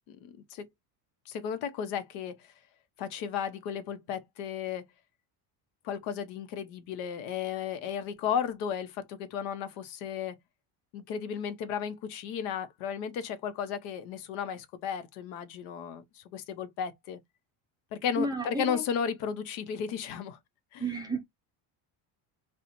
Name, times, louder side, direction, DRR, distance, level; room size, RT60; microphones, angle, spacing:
voice 1, 0.1-0.7 1.3-2.3 3.0-4.8 5.8-10.4 10.9-17.2 17.9-20.4 20.7-20.8, left 7 dB, 90° left, 1.0 m, -34 dB
voice 2, 18.2-18.8 20.8-21.2, right 1 dB, 10° right, 0.4 m, -32 dB
4.3 x 2.4 x 2.6 m
cardioid pair, 165°, 50 cm